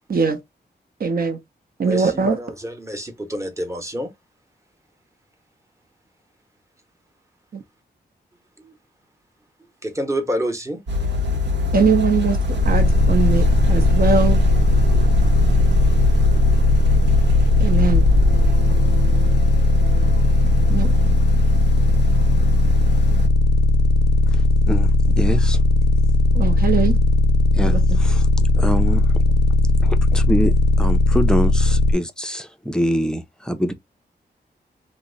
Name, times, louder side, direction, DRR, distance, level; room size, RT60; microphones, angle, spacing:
voice 1, 0.1-0.4 1.0-1.4 1.8-2.4 7.5-7.6 11.7-14.4 17.6-18.1 20.7-20.9 26.3-27.0 27.7-27.8, right 5 dB, 55° right, 0.7 m, -21 dB
voice 2, 1.8-4.1 8.6-8.7 9.8-11.1, equal, 15° right, 0.9 m, -28 dB
sound 1, 10.9-23.3, left 2 dB, 85° right, 0.9 m, -24 dB
sound 2, 12.6-31.9, left 2 dB, 70° left, 0.4 m, -17 dB
voice 3, 24.3-24.9 25.2-25.6 27.5-28.3 28.5-29.1 29.8-33.7, equal, 5° left, 0.5 m, -25 dB
2.8 x 2.1 x 3.8 m
wide cardioid pair, 110°, 18 cm